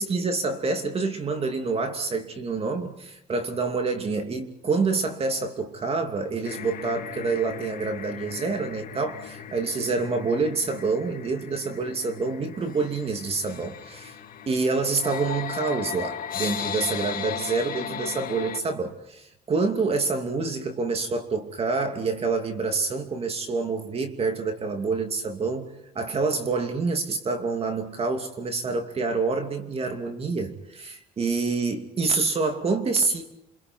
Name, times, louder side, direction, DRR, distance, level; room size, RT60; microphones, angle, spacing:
voice 1, 0.0-14.2 14.5-25.7 25.9-33.2, right 4 dB, 35° right, 2.8 m, -27 dB
sound 1, 6.4-18.6, left 8 dB, 55° left, 2.6 m, -37 dB
29.5 x 26.0 x 4.7 m
cardioid pair, 110°, 17 cm